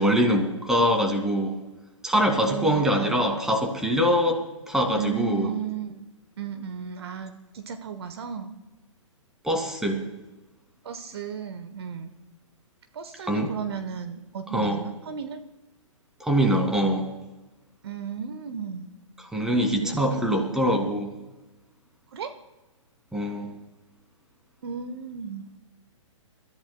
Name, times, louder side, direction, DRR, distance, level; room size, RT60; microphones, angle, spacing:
voice 1, 0.0-1.5 2.0-5.5 9.4-10.0 13.3-13.5 14.5-14.8 16.2-17.1 19.2-21.1 23.1-23.5, equal, 5° right, 3 dB, 2.1 m, -23 dB
voice 2, 2.5-3.3 5.0-6.1 6.4-8.6 10.8-12.1 12.9-15.4 17.8-18.9 19.8-20.5 22.1-22.3 24.6-25.5, right 8 dB, 50° right, 9 dB, 1.0 m, -34 dB
29.5 x 14.0 x 2.2 m, 1.1 s
figure-of-eight pair, 120°, 17 cm